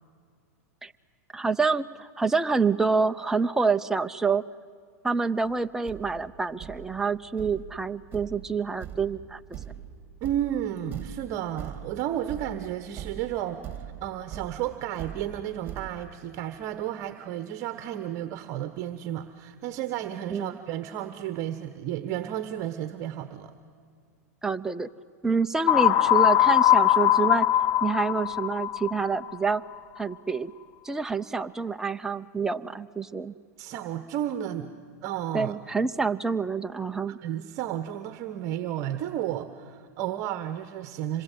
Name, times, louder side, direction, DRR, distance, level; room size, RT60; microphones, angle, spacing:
voice 1, 1.3-4.4 5.0-9.4 20.3-20.6 24.4-24.9 25.2-27.5 27.8-29.6 30.0-30.5 30.8-33.3 35.3-37.2, right 4 dB, 5° right, 7 dB, 0.6 m, -27 dB
Thump thud, 5.5-5.6 5.9-15.9, right 9 dB, 25° right, 2.9 m, -42 dB
voice 2, 10.2-23.5 33.6-34.7 35.0-35.5 37.1-41.2, right 11 dB, 40° right, 10 dB, 1.2 m, -32 dB
sound 1, 25.7-29.5, left 11 dB, 55° left, 0.9 m, -21 dB
26.0 x 21.5 x 9.3 m, 2.2 s
hypercardioid pair, 130°, 9 cm